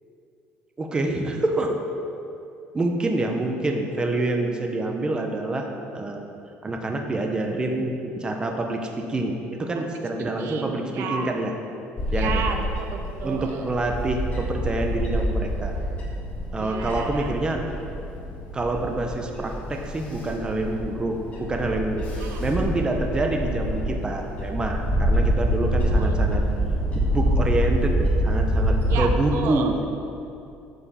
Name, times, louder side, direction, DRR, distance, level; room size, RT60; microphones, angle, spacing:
voice 1, 0.8-1.8 2.7-5.7 5.9-6.2 6.6-11.5 12.1-12.5 13.2-15.7 16.5-17.6 18.5-22.0 22.4-26.4 26.9-29.8, right 2 dB, 20° right, 2 dB, 0.9 m, -27 dB
voice 2, 10.4-11.4 12.1-13.7 16.6-17.3 22.2-22.6 25.6-26.2 28.9-29.7, right 5 dB, 70° right, 4 dB, 1.0 m, -32 dB
Bird / Wind, 12.0-29.0, equal, 30° left, 2.5 m, -26 dB
9.9 x 5.3 x 6.9 m, 2.7 s
cardioid pair, 130°, 4 cm